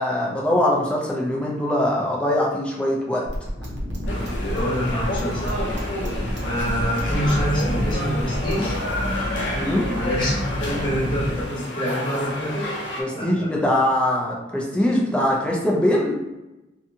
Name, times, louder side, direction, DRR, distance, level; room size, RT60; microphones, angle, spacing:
voice 1, 0.0-3.3 9.5-9.9 13.0-16.2, left 1 dB, 5° left, -3 dB, 0.4 m, -22 dB
sound 1, 3.3-8.6, equal, 70° right, 0.7 m, -31 dB
sound 2, 3.5-11.5, equal, 15° right, 0.8 m, -30 dB
sound 3, 4.1-13.0, left 1 dB, 80° left, 0.6 m, -30 dB
voice 2, 4.5-5.7 6.4-8.8 9.9-12.7 13.1-13.5, equal, 25° left, -7 dB, 1.0 m, -26 dB
2.6 x 2.3 x 2.6 m, 1.0 s
head